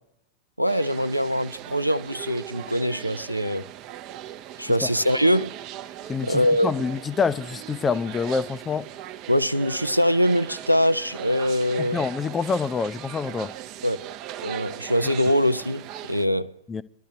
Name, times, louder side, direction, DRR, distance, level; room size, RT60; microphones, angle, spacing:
voice 1, 0.6-3.7 4.6-5.5 6.2-6.7 9.3-12.0 13.8-14.0 14.4-16.5, equal, 90° right, 0.5 m, -23 dB
sound 1, 0.7-16.3, right 12 dB, 40° right, 0.6 m, -39 dB
voice 2, 6.1-8.9 11.8-13.5 16.7-16.8, left 5 dB, 20° left, 0.5 m, -26 dB
24.0 x 12.0 x 2.8 m
figure-of-eight pair, 90°, 0 cm